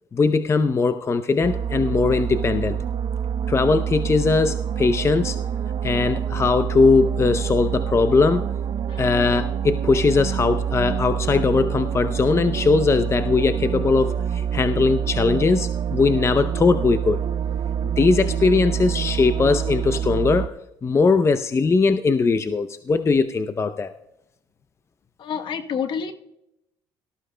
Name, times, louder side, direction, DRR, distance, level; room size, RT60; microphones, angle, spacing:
voice 1, 0.1-2.8 3.5-5.4 5.8-8.4 9.0-17.2 18.0-20.5 20.8-23.9, left 4 dB, 30° left, 10 dB, 0.6 m, -20 dB
sound 1, 1.4-20.5, right 8 dB, 55° right, 0.5 m, -26 dB
voice 2, 25.2-26.1, left 7 dB, 60° left, 7 dB, 1.0 m, -29 dB
18.0 x 14.0 x 2.2 m, 0.83 s
supercardioid pair, 75°, 9 cm